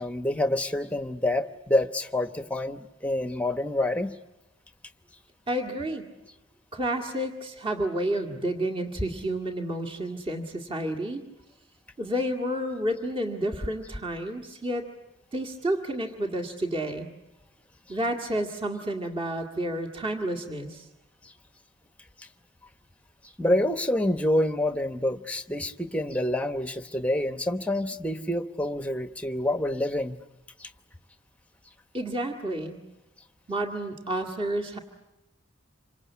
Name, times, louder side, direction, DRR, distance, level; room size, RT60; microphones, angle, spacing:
voice 1, 0.0-4.1 23.4-30.2 30.6-30.7, left 1 dB, 5° left, 8 dB, 1.0 m, -27 dB
voice 2, 5.5-6.1 6.7-11.2 12.0-14.9 15.3-17.1 17.9-20.8 31.9-32.8 33.5-34.8, right 1 dB, 25° right, 3 dB, 2.0 m, -30 dB
27.5 x 25.0 x 8.4 m, 0.98 s
head